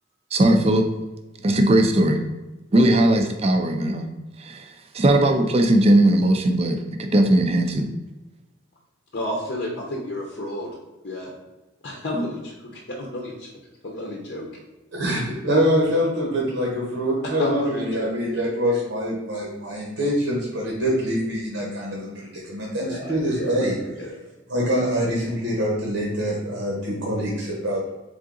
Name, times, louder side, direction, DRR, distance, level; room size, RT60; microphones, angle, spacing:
voice 1, 0.3-0.9 1.4-2.2 2.7-4.1 4.4-7.9, right 1 dB, 30° right, 6 dB, 0.4 m, -19 dB
voice 2, 9.1-10.7 11.0-11.3 11.8-13.5 13.8-14.5 17.2-18.4 22.7-24.1, left 1 dB, 55° left, -1 dB, 0.7 m, -31 dB
voice 3, 14.9-23.8 24.5-27.9, equal, 80° right, -3 dB, 1.1 m, -25 dB
3.8 x 3.7 x 3.7 m, 1.1 s
head